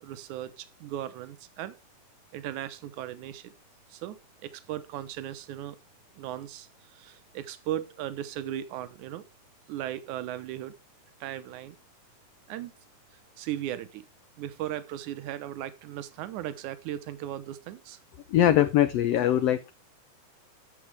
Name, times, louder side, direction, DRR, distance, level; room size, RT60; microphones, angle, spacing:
voice 1, 0.0-1.8 2.3-3.5 3.9-5.8 6.2-9.2 9.7-10.7 11.2-11.8 12.5-12.7 13.4-14.1 14.4-18.0, right 12 dB, 75° right, 2.4 m, -37 dB
voice 2, 18.3-19.7, left 11 dB, 80° left, 1.4 m, -22 dB
11.0 x 7.5 x 3.4 m
omnidirectional pair, 3.6 m